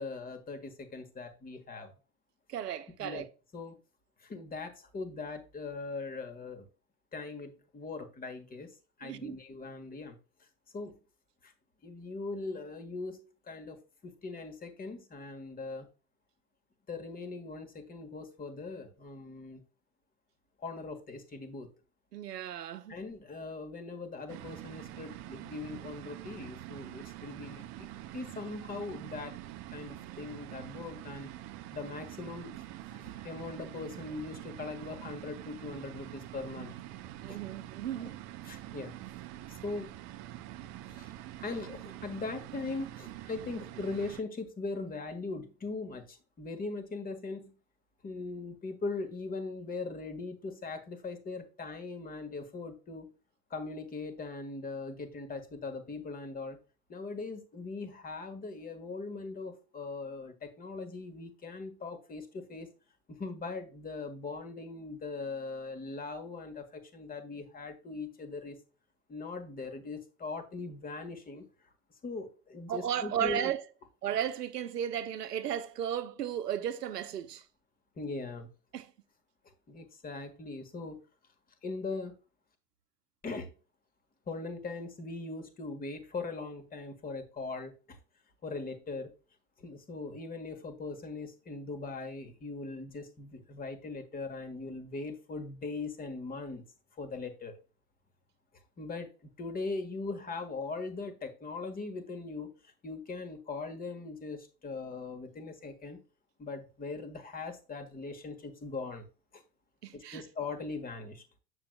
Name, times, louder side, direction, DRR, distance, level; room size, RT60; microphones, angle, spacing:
voice 1, 0.0-1.9 3.0-3.2 3.5-3.8 4.2-6.7 7.1-8.7 9.0-10.2 10.7-11.0 11.4-11.5 11.8-15.9 16.9-19.6 20.6-21.7 22.9-27.9 28.1-29.4 29.7-31.3 31.7-32.5 32.9-36.7 37.3-37.4 38.0-38.1 38.4-38.9 39.5-40.0 40.9-41.1 41.4-47.5 48.0-53.1 53.5-56.6 56.9-62.7 63.1-68.6 69.1-71.4 72.0-73.5 78.0-78.5 79.4-81.0 81.6-82.1 83.2-83.5 84.3-88.0 88.4-89.1 89.6-96.6 97.0-97.5 98.8-106.0 106.4-109.1 109.3-109.4 109.9-111.2, left 3 dB, 20° left, 1.4 m, -40 dB
voice 2, 2.5-3.3 9.0-9.4 22.1-23.0 37.2-38.2 72.7-73.6 74.0-77.4 78.7-78.9 109.8-110.3, right 10 dB, 85° right, 0.8 m, -34 dB
sound 1, 24.3-44.2, right 14 dB, 35° right, 0.6 m, -45 dB
8.0 x 6.8 x 2.2 m
hypercardioid pair, 95°, 47 cm